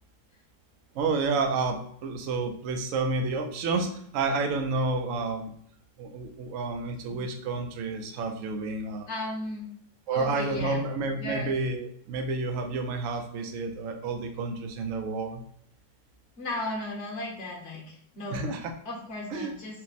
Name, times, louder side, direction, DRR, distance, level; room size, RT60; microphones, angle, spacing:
voice 1, 0.9-5.5 6.0-9.1 10.1-15.4 18.3-18.7 19.3-19.5, right 3 dB, 75° right, 5 dB, 0.7 m, -30 dB
voice 2, 9.1-9.7 10.1-10.8 11.2-11.5 16.4-18.5 18.8-19.8, left 1 dB, 50° left, -2 dB, 1.0 m, -35 dB
4.3 x 2.0 x 4.0 m, 0.65 s
omnidirectional pair, 1.9 m